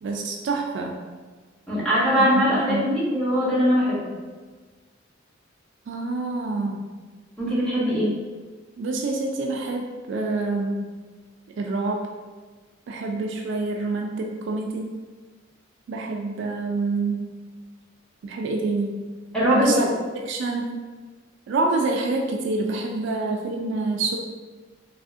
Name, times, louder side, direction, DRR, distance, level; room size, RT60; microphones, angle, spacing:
voice 1, 0.0-1.0 2.1-2.9 5.9-6.9 8.8-10.9 11.6-12.1 12.9-14.9 15.9-17.3 18.2-19.1 19.5-19.9 20.2-20.7 21.5-24.2, right 3 dB, 65° right, 1 dB, 0.3 m, -27 dB
voice 2, 1.7-4.0 7.4-8.1 19.3-19.9, equal, 5° left, -9 dB, 0.9 m, -21 dB
3.4 x 2.4 x 2.4 m, 1.4 s
head